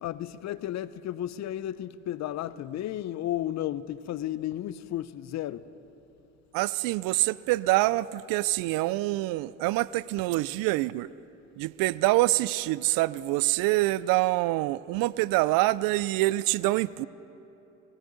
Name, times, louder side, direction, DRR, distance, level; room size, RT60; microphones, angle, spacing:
voice 1, 0.0-5.7, left 12 dB, 50° left, 0.6 m, -33 dB
voice 2, 6.5-11.1 11.6-17.1, right 18 dB, 70° right, 0.5 m, -26 dB
19.5 x 16.5 x 4.0 m
supercardioid pair, 80°, 35 cm